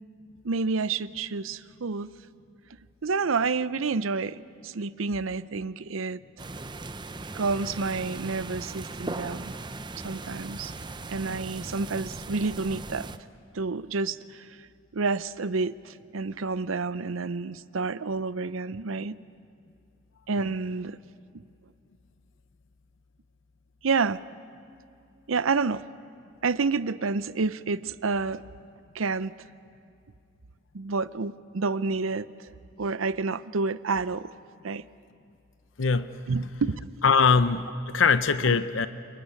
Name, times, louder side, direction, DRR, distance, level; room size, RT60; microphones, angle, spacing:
voice 1, 0.4-2.1 3.0-6.2 7.3-9.5 10.0-10.7 11.1-13.1 13.5-14.6 14.9-19.2 20.3-21.0 23.8-24.2 25.3-25.9 26.4-28.4 28.9-29.3 30.7-32.3 32.8-34.3 34.6-34.9 36.3-36.9, right 4 dB, 85° right, 16 dB, 0.7 m, -29 dB
sound 1, 6.4-13.2, right 2 dB, 20° right, 0.7 m, -38 dB
voice 2, 35.8-36.1 37.0-38.9, left 5 dB, 70° left, 12 dB, 0.8 m, -22 dB
29.0 x 19.5 x 9.6 m, 2.5 s
head